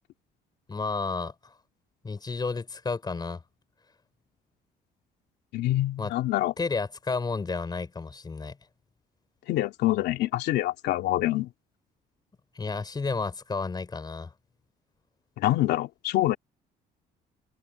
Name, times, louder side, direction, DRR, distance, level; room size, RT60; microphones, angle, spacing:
voice 1, 0.7-1.5 2.0-3.4 6.0-6.1 6.6-8.6 12.5-14.3, left 4 dB, 25° left, 4.8 m, -31 dB
voice 2, 5.5-6.5 9.5-11.5 15.4-16.4, left 15 dB, 80° left, 2.7 m, -26 dB
cardioid pair, 110°, 17 cm